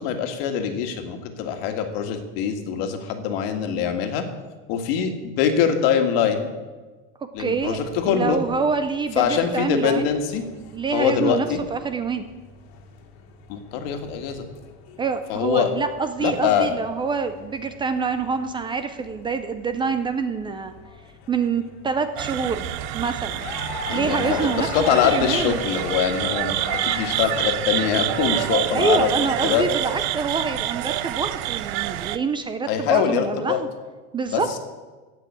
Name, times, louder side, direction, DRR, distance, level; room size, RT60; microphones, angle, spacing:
voice 1, 0.0-4.2 4.7-6.5 7.3-8.4 9.2-10.4 10.9-11.6 13.5-14.5 15.3-15.7 16.2-16.7 23.9-29.1 29.4-29.6 32.7-33.6 34.3-34.6, left 8 dB, 65° left, 6 dB, 1.9 m, -23 dB
sound 1, 7.4-27.2, left 6 dB, 85° left, 2.2 m, -40 dB
voice 2, 7.4-7.8 8.1-10.1 10.7-12.3 15.0-20.7 21.3-22.7 22.9-23.4 23.9-25.6 28.7-33.7 34.1-34.5, right 5 dB, 15° right, 9 dB, 0.4 m, -26 dB
sound 2, 22.2-32.2, right 13 dB, 65° right, 0.8 m, -27 dB
16.0 x 6.0 x 8.5 m, 1.3 s
cardioid pair, 160°, 31 cm